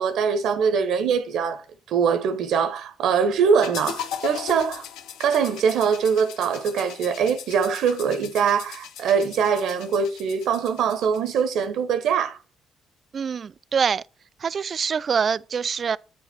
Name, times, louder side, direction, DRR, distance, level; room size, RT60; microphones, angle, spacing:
voice 1, 0.0-4.8 5.2-12.4, right 6 dB, 80° right, 1.1 m, -23 dB
sound 1, 3.6-11.7, left 9 dB, 90° left, 0.9 m, -38 dB
voice 2, 13.1-14.0 14.4-16.0, right 6 dB, 45° right, 0.4 m, -25 dB
9.0 x 4.8 x 6.1 m
cardioid pair, 90°, 0 cm